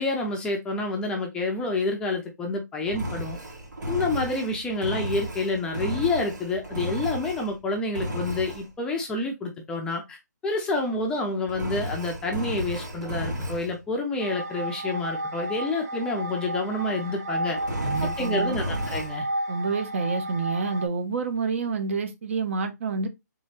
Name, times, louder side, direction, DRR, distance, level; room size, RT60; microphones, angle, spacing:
voice 1, 0.0-3.4 3.9-17.6 18.0-19.3, left 2 dB, 10° left, 0.5 m, -28 dB
Engine, 2.9-7.6 7.9-8.7 11.5-13.7 17.5-19.1, equal, 80° right, 1.9 m, -33 dB
sound 1, 14.2-20.9, right 1 dB, 65° right, 1.0 m, -32 dB
voice 2, 17.8-18.5 19.5-23.1, right 4 dB, 45° right, 0.8 m, -28 dB
3.6 x 3.1 x 4.1 m
hypercardioid pair, 155°, 10 cm